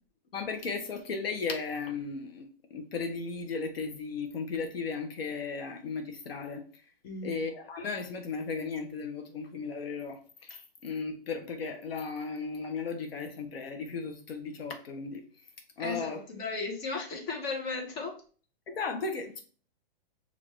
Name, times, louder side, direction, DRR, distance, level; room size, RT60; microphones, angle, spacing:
voice 1, 0.3-6.6 7.2-15.2 15.8-16.2 18.7-19.4, left 4 dB, 80° left, 1.0 m, -36 dB
voice 2, 7.0-7.4 15.8-18.2, left 3 dB, 30° left, 1.3 m, -35 dB
5.2 x 2.7 x 3.2 m
hypercardioid pair, 150°, 29 cm